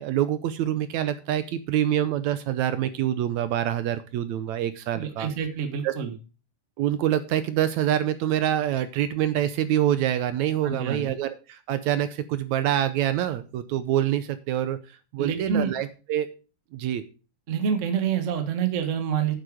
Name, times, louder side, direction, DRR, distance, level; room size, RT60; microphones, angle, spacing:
voice 1, 0.0-5.3 5.8-5.9 6.8-14.8 15.1-16.3 16.7-17.0, right 11 dB, 75° right, 12 dB, 1.9 m, -26 dB
voice 2, 4.9-6.1 10.6-11.1 15.2-15.7 17.5-19.3, right 7 dB, 45° right, 7 dB, 0.9 m, -27 dB
9.4 x 7.9 x 4.9 m, 0.34 s
omnidirectional pair, 3.7 m